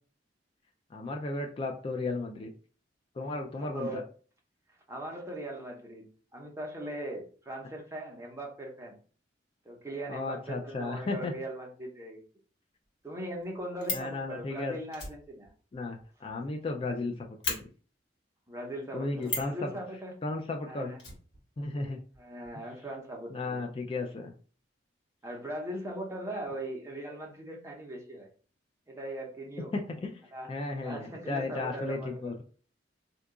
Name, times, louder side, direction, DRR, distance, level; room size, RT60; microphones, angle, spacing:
voice 1, 0.9-2.5 3.2-4.0 10.1-11.3 13.9-14.7 15.7-17.6 18.9-19.8 20.2-20.9 21.6-22.0 23.3-24.3 29.7-30.2 30.5-32.4, left 3 dB, 30° left, 2 dB, 0.3 m, -34 dB
voice 2, 3.6-4.1 4.9-9.0 9.6-12.2 13.0-15.5 18.5-20.1 20.6-21.0 22.2-23.6 25.2-28.3 28.9-29.7 30.3-32.3, right 1 dB, 15° right, 0 dB, 0.8 m, -40 dB
Fire, 13.0-13.1 13.4-14.1 14.9-16.7 17.0-17.1 17.4-17.6 19.2-19.6 21.0-21.9 22.1-22.2 22.4-22.6, left 2 dB, 75° left, 1.4 m, -36 dB
2.8 x 2.3 x 3.6 m, 0.40 s
head